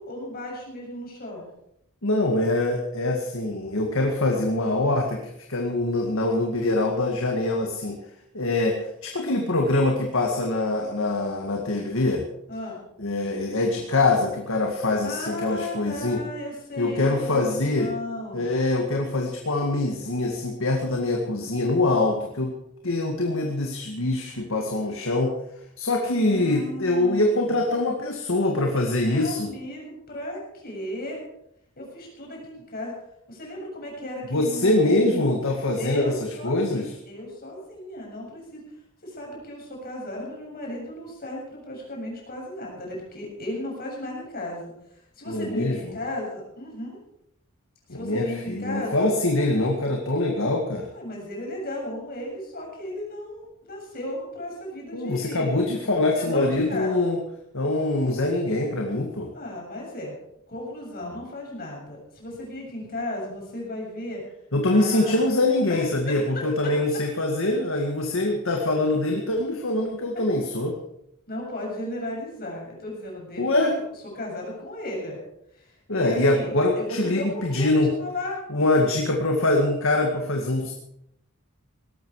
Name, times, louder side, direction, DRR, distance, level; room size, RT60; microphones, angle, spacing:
voice 1, 0.0-1.5 12.5-12.8 15.0-18.5 26.2-27.6 29.0-31.2 31.8-32.9 33.3-35.3 35.8-38.6 39.0-47.0 47.9-49.1 50.9-55.6 56.2-57.1 59.3-60.2 60.5-64.2 64.7-65.3 65.7-65.8 66.1-66.4 71.3-73.8 74.1-75.2 75.5-78.9, left 1 dB, 45° left, -1 dB, 7.2 m, -35 dB
voice 2, 2.0-8.0 8.3-12.2 13.0-16.2 16.8-17.9 18.3-22.6 22.8-25.4 25.8-29.5 34.3-36.9 45.3-46.0 47.9-50.9 54.9-57.2 57.5-59.3 64.5-70.8 73.4-73.8 75.9-77.9 78.5-80.7, left 2 dB, 65° left, 2 dB, 2.1 m, -24 dB
18.5 x 13.5 x 4.9 m, 0.76 s
head